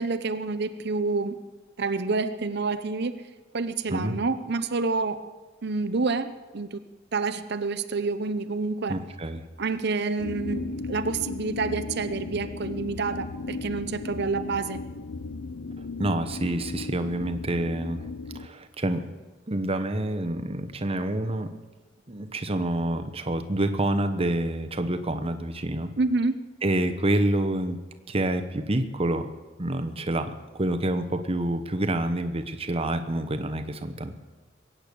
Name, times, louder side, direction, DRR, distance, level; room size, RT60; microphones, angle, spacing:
voice 1, 0.0-1.3 1.8-3.2 3.5-5.2 5.6-6.8 7.1-9.0 9.6-14.8 26.0-26.4, right 3 dB, 60° right, 12 dB, 0.8 m, -28 dB
voice 2, 8.9-9.4 16.0-18.1 18.3-19.0 19.5-21.5 22.1-25.9 26.6-27.8 28.1-29.3 29.6-34.2, right 1 dB, 30° right, 8 dB, 1.0 m, -27 dB
sound 1, 10.2-18.5, left 3 dB, 70° left, 0.6 m, -36 dB
22.0 x 9.0 x 6.9 m, 1.2 s
head